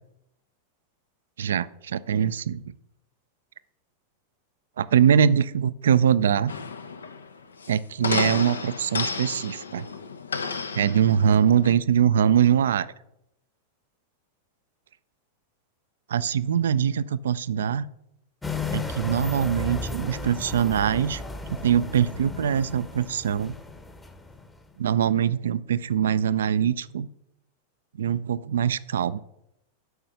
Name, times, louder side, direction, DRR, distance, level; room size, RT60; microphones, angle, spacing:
voice 1, 1.4-2.6 4.8-6.5 7.7-9.9 10.7-12.9 16.1-17.9 18.7-21.2 21.5-23.5 24.8-27.1 28.0-29.2, right 8 dB, 65° right, 17 dB, 0.4 m, -23 dB
sound 1, 6.5-11.7, left 5 dB, 75° left, 0.6 m, -32 dB
sound 2, 18.4-24.7, left 3 dB, 10° left, 0.9 m, -34 dB
8.0 x 5.4 x 6.3 m, 0.83 s
figure-of-eight pair, 90°, 0 cm